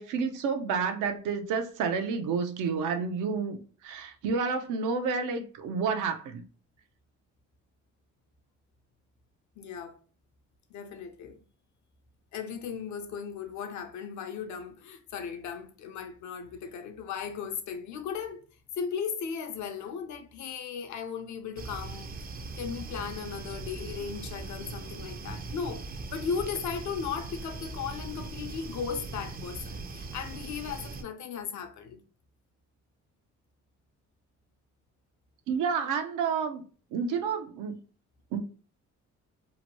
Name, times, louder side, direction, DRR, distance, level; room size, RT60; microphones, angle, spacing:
voice 1, 0.0-6.4 35.5-36.6 36.9-37.8 38.3-38.4, right 5 dB, 90° right, 0.5 m, -30 dB
voice 2, 9.6-10.0 10.7-11.4 12.3-18.4 18.8-22.2 22.6-32.0, left 6 dB, 70° left, 0.6 m, -36 dB
sound 1, 21.6-31.0, right 3 dB, 30° right, 0.4 m, -40 dB
2.8 x 2.2 x 2.8 m
cardioid pair, 90°, 30 cm